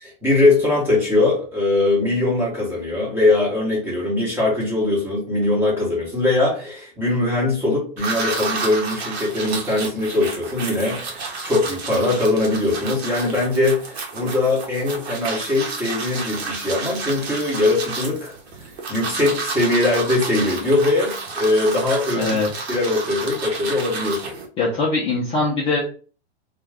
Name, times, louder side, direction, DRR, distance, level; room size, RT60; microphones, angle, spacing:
voice 1, 0.0-18.4 18.9-22.4 22.7-24.3, left 2 dB, 5° right, -4 dB, 1.0 m, -21 dB
sound 1, 8.0-24.5, right 4 dB, 80° right, 1.0 m, -31 dB
voice 2, 22.2-22.5 24.6-25.8, left 3 dB, 20° left, -5 dB, 0.6 m, -21 dB
2.5 x 2.2 x 3.3 m, 0.39 s
supercardioid pair, 150°, 31 cm